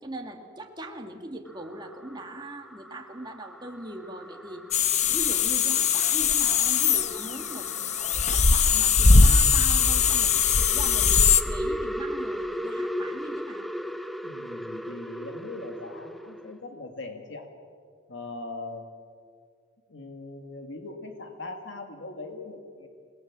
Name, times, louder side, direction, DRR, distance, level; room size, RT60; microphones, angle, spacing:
voice 1, 0.0-4.7 5.1-8.0 8.3-11.2 11.5-13.7, right 1 dB, 20° right, 2 dB, 2.0 m, -40 dB
sound 1, 1.5-16.6, equal, ahead, 0.5 m, -38 dB
sound 2, 4.7-11.4, left 5 dB, 35° left, 0.9 m, -21 dB
voice 2, 14.2-17.4 18.1-18.9 19.9-22.9, left 2 dB, 70° left, 4 dB, 2.2 m, -40 dB
28.5 x 19.0 x 7.5 m, 2.1 s
head